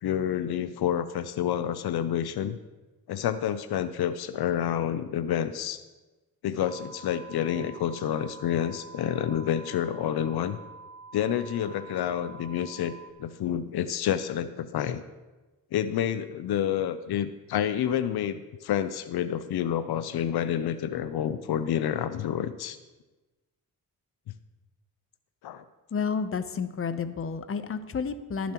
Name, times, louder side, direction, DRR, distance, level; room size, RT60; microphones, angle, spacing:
voice 1, 0.0-2.6 3.1-5.8 6.4-10.6 11.1-12.9 13.2-15.0 15.7-22.8 25.4-25.6, left 10 dB, 85° left, 12 dB, 0.6 m, -29 dB
sound 1, 6.6-13.1, right 4 dB, 55° right, 0.7 m, -47 dB
voice 2, 25.9-28.5, left 5 dB, 35° left, 10 dB, 0.7 m, -31 dB
21.5 x 7.2 x 3.0 m, 1.2 s
cardioid pair, 105°, 37 cm